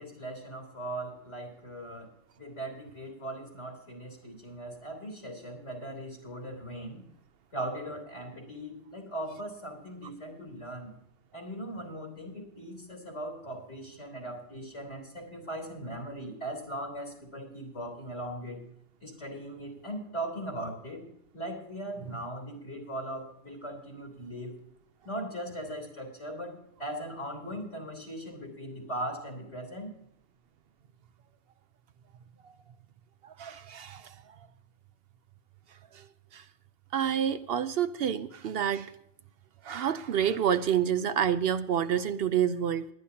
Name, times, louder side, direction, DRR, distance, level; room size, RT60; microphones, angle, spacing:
voice 1, 0.0-2.1 2.4-7.0 7.5-10.9 11.3-18.6 19.0-21.0 21.3-24.6 25.0-30.0, right 1 dB, 80° left, 3 dB, 3.7 m, -39 dB
voice 2, 33.2-34.1 35.9-36.0 36.3-36.4 36.9-38.9 39.6-42.9, right 9 dB, 65° right, 12 dB, 0.7 m, -28 dB
21.5 x 10.0 x 2.8 m, 0.77 s
omnidirectional pair, 1.2 m